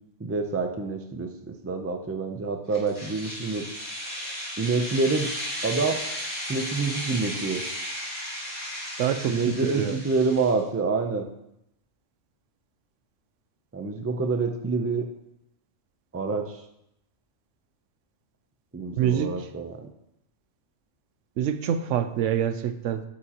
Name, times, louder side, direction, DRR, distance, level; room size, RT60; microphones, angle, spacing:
voice 1, 0.2-3.7 4.6-5.3 5.6-6.0 6.5-7.6 9.3-11.3 13.7-15.1 16.1-16.6 18.7-19.9, right 4 dB, 20° right, 5 dB, 0.4 m, -27 dB
sound 1, 2.7-10.6, equal, 25° left, 3.2 m, -35 dB
voice 2, 9.0-10.0 19.0-19.3 21.4-23.0, right 9 dB, 85° right, 10 dB, 0.9 m, -26 dB
8.1 x 7.5 x 3.0 m, 0.81 s
omnidirectional pair, 1.3 m